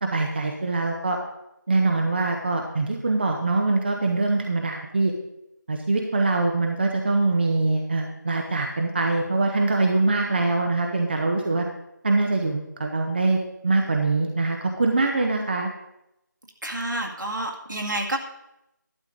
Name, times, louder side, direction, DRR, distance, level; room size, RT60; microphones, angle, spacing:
voice 1, 0.0-1.2 1.7-5.1 5.7-11.6 12.0-15.7, right 3 dB, 30° right, 2 dB, 0.8 m, -23 dB
voice 2, 16.6-18.2, right 1 dB, 75° right, 1 dB, 2.0 m, -29 dB
12.0 x 8.5 x 3.8 m, 0.86 s
figure-of-eight pair, 170°, 10 cm